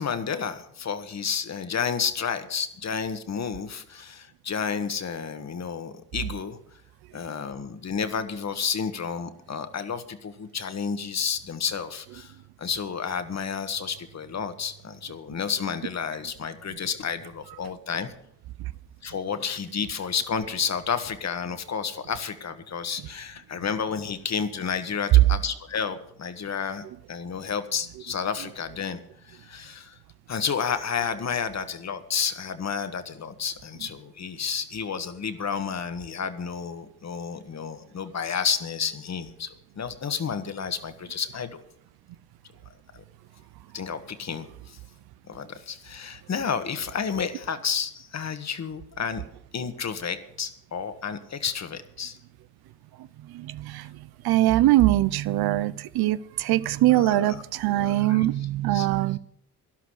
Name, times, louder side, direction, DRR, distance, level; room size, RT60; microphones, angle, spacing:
voice 1, 0.0-6.6 7.1-12.3 12.6-18.1 19.0-30.0 30.3-39.5 39.7-41.6 42.9-43.0 43.7-44.8 45.3-49.2 49.5-52.2 56.9-57.3 57.8-58.2 58.7-58.9, left 6 dB, 45° left, 1.6 m, -31 dB
voice 2, 53.0-59.2, right 15 dB, 80° right, 0.7 m, -23 dB
12.0 x 11.5 x 6.4 m
cardioid pair, 80°, 37 cm